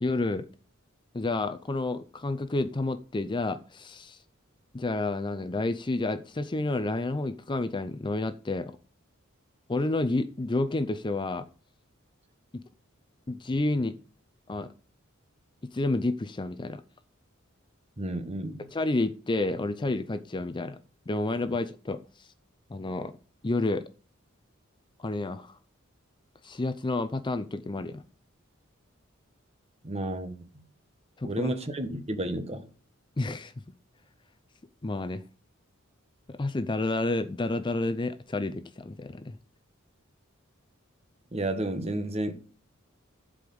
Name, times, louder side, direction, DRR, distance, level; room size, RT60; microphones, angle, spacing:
voice 1, 0.0-0.5 1.1-4.2 4.7-8.7 9.7-11.4 13.3-14.0 14.5-14.7 15.7-16.8 18.7-20.8 21.1-22.3 22.7-23.1 23.4-23.8 25.0-25.6 26.4-28.0 31.2-31.5 33.2-33.5 34.8-35.2 36.3-39.4, left 2 dB, 25° left, 0.5 m, -30 dB
voice 2, 18.0-18.7 29.8-30.6 31.2-32.7 41.3-42.4, right 1 dB, 30° right, 1.3 m, -32 dB
11.5 x 5.0 x 7.0 m
head